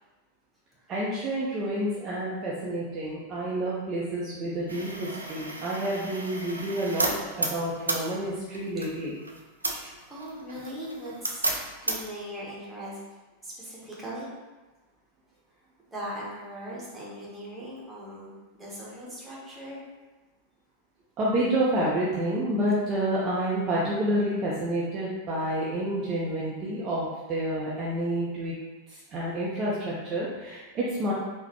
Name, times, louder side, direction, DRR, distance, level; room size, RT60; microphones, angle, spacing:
voice 1, 0.9-9.1 21.2-28.5 28.9-31.1, right 1 dB, 30° right, -6 dB, 0.5 m, -29 dB
sound 1, 4.7-12.2, right 2 dB, 80° right, 0.4 m, -34 dB
voice 2, 9.8-11.5 11.8-13.0 13.4-14.3 15.9-19.8, equal, 10° right, -7 dB, 1.0 m, -39 dB
3.8 x 2.1 x 2.9 m, 1.2 s
figure-of-eight pair, 90°, 0 cm